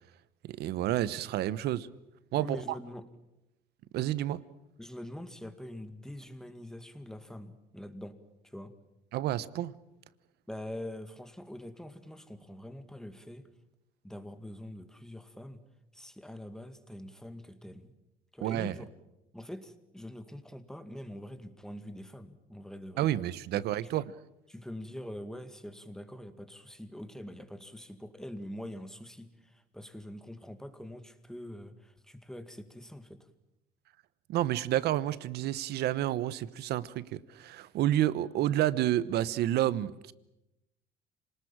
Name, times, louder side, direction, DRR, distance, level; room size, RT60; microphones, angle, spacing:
voice 1, 0.4-1.9 2.3-2.6 3.9-4.4 9.1-9.7 18.4-18.7 23.0-24.0 34.3-40.1, right 13 dB, 75° right, 1.0 m, -30 dB
voice 2, 2.4-3.1 4.8-8.2 8.4-8.7 10.5-13.5 14.0-15.6 15.9-17.9 18.3-18.9 19.3-23.1 23.5-23.9 24.5-33.3, left 1 dB, 5° left, 2.1 m, -44 dB
27.0 x 19.5 x 8.9 m
cardioid pair, 110°, 17 cm